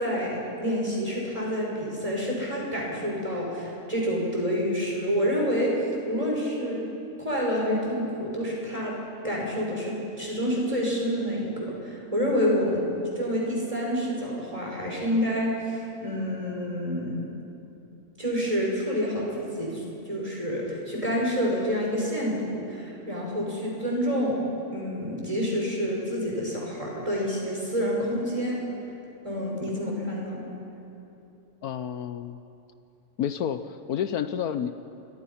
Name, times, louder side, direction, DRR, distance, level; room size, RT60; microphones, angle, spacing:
voice 1, 0.0-6.8 7.2-8.9 9.2-12.9 13.2-17.2 18.2-24.4 24.7-28.6 29.2-30.4, equal, 20° right, -3 dB, 6.4 m, -28 dB
voice 2, 31.6-32.4 33.2-34.8, left 9 dB, 75° left, 10 dB, 1.2 m, -30 dB
28.5 x 24.5 x 5.8 m, 2.8 s
omnidirectional pair, 1.6 m